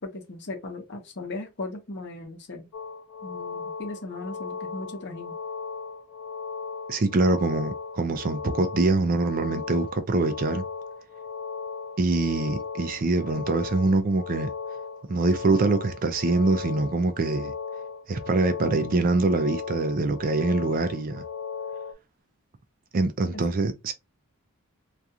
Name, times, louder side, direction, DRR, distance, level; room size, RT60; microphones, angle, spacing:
voice 1, 0.0-2.7 3.2-5.4 23.3-23.4, left 2 dB, 55° left, 0.8 m, -37 dB
sound 1, 2.7-21.9, left 5 dB, 85° left, 0.5 m, -37 dB
voice 2, 6.9-10.6 12.0-14.5 15.1-17.5 18.1-21.2 22.9-23.9, right 3 dB, 40° right, 0.4 m, -24 dB
2.4 x 2.3 x 2.7 m
head